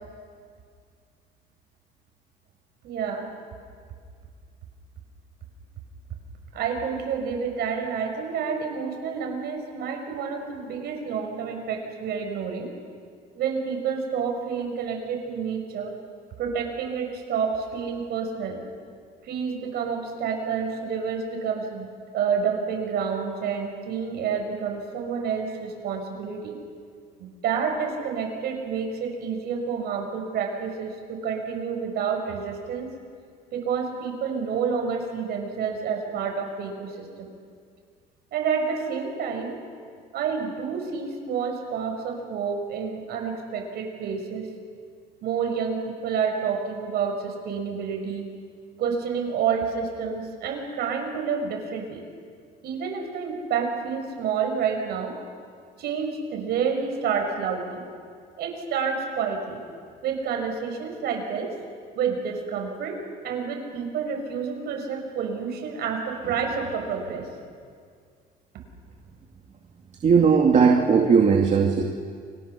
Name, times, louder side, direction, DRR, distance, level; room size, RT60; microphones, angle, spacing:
voice 1, 2.8-3.3 6.5-12.7 13.3-15.9 16.4-18.6 19.2-26.5 27.2-32.9 33.5-37.3 38.3-39.5 40.1-44.5 45.2-48.3 48.8-52.0 52.6-55.1 55.8-57.8 58.4-59.6 60.0-61.5 61.9-63.0 63.2-67.3, right 6 dB, 70° right, 2 dB, 6.3 m, -29 dB
voice 2, 70.0-71.8, right 6 dB, 45° right, 1 dB, 2.5 m, -18 dB
29.5 x 24.5 x 7.1 m, 2.2 s
cardioid pair, 110°, 17 cm